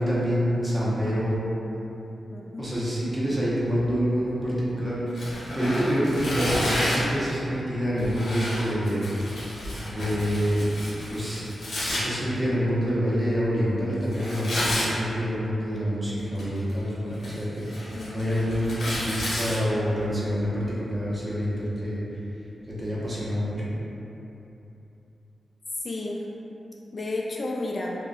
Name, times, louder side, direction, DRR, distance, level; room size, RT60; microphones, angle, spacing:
voice 1, 0.0-1.4 2.6-5.0 5.3-9.1 9.8-10.7 11.1-11.5 11.8-22.0 22.7-23.7, equal, 25° right, -8 dB, 1.0 m, -27 dB
voice 2, 2.3-2.7 5.6-5.9 17.9-18.1 25.8-26.2 26.9-28.0, left 2 dB, 50° left, -2 dB, 0.3 m, -32 dB
Tearing, 5.1-7.1 8.0-12.0 14.1-14.9 16.2-16.7 17.1-19.6, left 1 dB, 75° left, 1.0 m, -31 dB
2.4 x 2.2 x 4.0 m, 3.0 s
cardioid pair, 45°, 0 cm